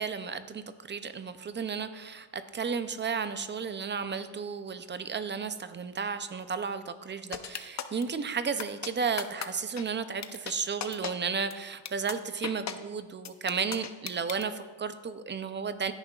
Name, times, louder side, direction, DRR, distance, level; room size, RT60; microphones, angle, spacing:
voice 1, 0.0-15.9, right 5 dB, 25° right, 11 dB, 0.4 m, -33 dB
sound 1, 7.3-8.0 8.6-8.9 9.2-9.5 9.8-9.9 10.2-10.5 10.8-11.1 11.5-11.6 11.9-12.1 12.4-12.7 13.3-14.4, left 9 dB, 35° left, 0.6 m, -35 dB
16.5 x 9.7 x 2.3 m, 1.3 s
cardioid pair, 130°, 46 cm